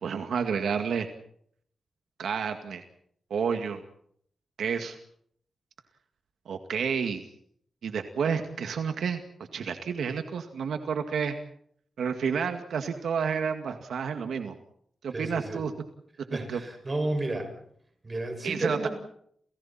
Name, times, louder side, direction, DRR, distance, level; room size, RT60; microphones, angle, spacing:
voice 1, 0.0-1.1 2.2-2.8 3.3-3.8 4.6-5.0 6.5-7.2 7.8-9.2 9.5-11.4 12.0-14.5 15.0-15.7 16.5-16.6 18.4-18.9, right 6 dB, 85° right, 6 dB, 2.1 m, -30 dB
voice 2, 15.1-15.6 16.3-17.5 18.0-18.9, right 2 dB, 25° right, 5 dB, 6.3 m, -31 dB
30.0 x 29.0 x 4.4 m, 0.66 s
wide cardioid pair, 150°, 0 cm